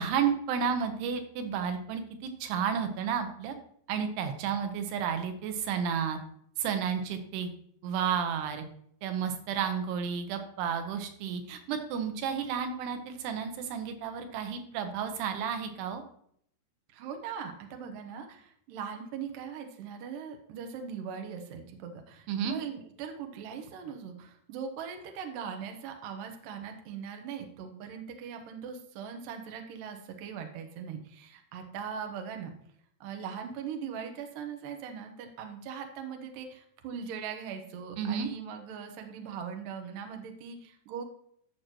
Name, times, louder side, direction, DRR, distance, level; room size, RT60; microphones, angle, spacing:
voice 1, 0.0-3.6 3.9-6.2 6.6-7.5 7.8-8.6 9.0-16.0 22.3-22.6 38.0-38.3, right 7 dB, 90° right, 7 dB, 3.0 m, -32 dB
voice 2, 16.9-32.5 33.0-41.0, right 7 dB, 70° right, 5 dB, 2.4 m, -40 dB
13.5 x 6.4 x 3.0 m, 0.65 s
omnidirectional pair, 4.7 m